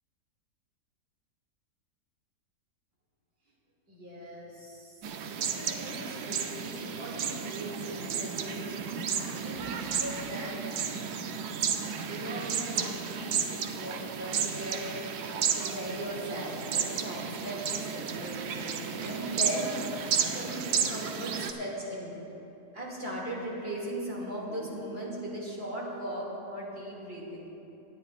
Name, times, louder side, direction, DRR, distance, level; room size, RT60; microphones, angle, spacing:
voice 1, 3.9-8.7 9.3-10.6 12.1-15.0 15.4-19.7 20.0-22.1 22.7-27.4, right 1 dB, 35° right, -4 dB, 2.6 m, -38 dB
sound 1, 5.0-21.5, right 7 dB, 75° right, 1.2 m, -33 dB
26.0 x 10.0 x 2.5 m, 2.9 s
omnidirectional pair, 1.8 m